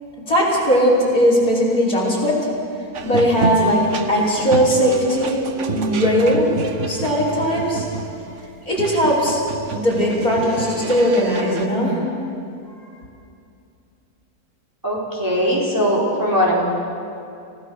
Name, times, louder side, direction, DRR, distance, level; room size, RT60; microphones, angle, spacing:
voice 1, 0.3-2.4 3.0-6.5 6.9-7.9 8.7-9.4 9.7-12.0, equal, 70° left, -5 dB, 6.0 m, -18 dB
sound 1, 2.9-11.7, right 5 dB, 55° right, 1.3 m, -29 dB
voice 2, 14.8-16.7, equal, 10° right, -5 dB, 4.2 m, -20 dB
30.0 x 17.0 x 6.5 m, 2.6 s
omnidirectional pair, 1.6 m